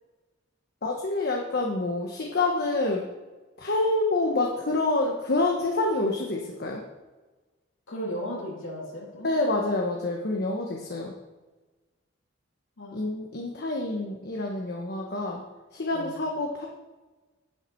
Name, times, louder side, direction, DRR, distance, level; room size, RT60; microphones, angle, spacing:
voice 1, 0.8-3.1 3.6-6.8 9.2-11.1 12.9-15.4 15.7-16.7, left 2 dB, 55° left, 0 dB, 1.1 m, -27 dB
voice 2, 7.9-9.3 12.8-13.0 15.9-16.2, equal, 80° left, -4 dB, 2.5 m, -35 dB
10.5 x 9.0 x 4.6 m, 1.2 s
head